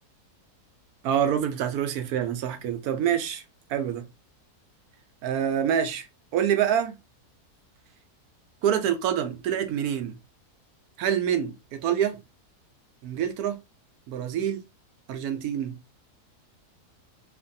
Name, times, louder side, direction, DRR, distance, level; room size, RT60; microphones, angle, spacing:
voice 1, 1.0-3.4 3.7-4.1 5.2-6.1 6.3-6.9 8.6-10.2 11.0-12.2 13.0-13.6 14.1-14.6 15.1-15.8, right 9 dB, 75° right, 1.1 m, -26 dB
3.1 x 2.5 x 2.5 m
omnidirectional pair, 1.7 m